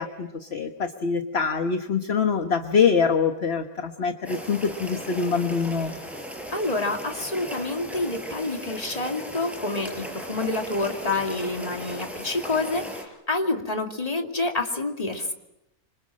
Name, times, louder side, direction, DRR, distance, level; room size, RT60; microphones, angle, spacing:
voice 1, 0.0-5.9, left 6 dB, 45° left, 6 dB, 1.4 m, -24 dB
sound 1, 4.2-13.0, equal, ahead, 5.2 m, -37 dB
voice 2, 6.5-15.3, left 2 dB, 25° left, 3 dB, 2.6 m, -28 dB
27.0 x 26.0 x 7.6 m, 0.88 s
omnidirectional pair, 1.6 m